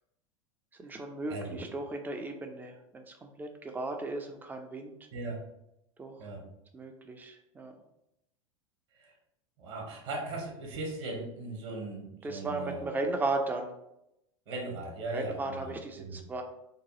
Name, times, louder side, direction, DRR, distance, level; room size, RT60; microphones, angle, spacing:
voice 1, 0.8-5.0 6.0-6.3 6.7-7.7 12.2-13.7 15.1-16.4, right 2 dB, 10° right, 4 dB, 0.3 m, -36 dB
voice 2, 1.3-1.6 5.1-5.4 6.2-6.4 9.0-9.1 9.6-12.9 14.5-16.2, right 2 dB, 50° right, 0 dB, 0.8 m, -38 dB
2.7 x 2.2 x 3.0 m, 0.84 s
figure-of-eight pair, 90°, 18 cm